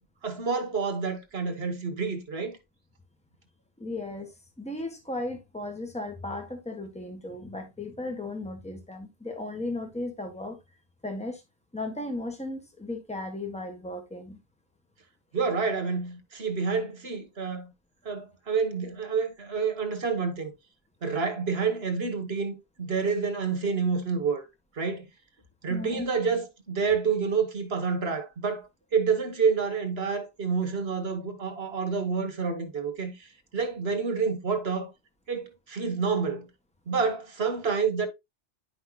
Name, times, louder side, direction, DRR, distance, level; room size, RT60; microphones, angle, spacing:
voice 1, 0.2-2.6 15.3-17.7 18.0-20.5 21.0-24.4 24.8-25.0 25.6-34.9 35.3-36.5 36.9-38.1, right 5 dB, 70° right, 1.6 m, -28 dB
voice 2, 3.8-4.3 4.6-10.6 11.0-11.4 11.7-14.4 25.7-26.1, left 2 dB, 5° left, 1.3 m, -35 dB
10.0 x 5.5 x 2.4 m
omnidirectional pair, 1.1 m